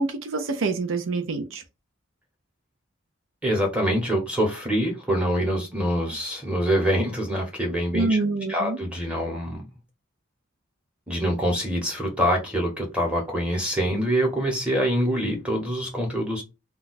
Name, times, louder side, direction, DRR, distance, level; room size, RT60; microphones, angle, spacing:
voice 1, 0.0-1.6 7.9-8.8, right 3 dB, 75° right, 0.5 m, -26 dB
voice 2, 3.4-8.2 8.5-9.6 11.1-16.4, equal, 5° right, 0.8 m, -25 dB
2.3 x 2.2 x 3.9 m
head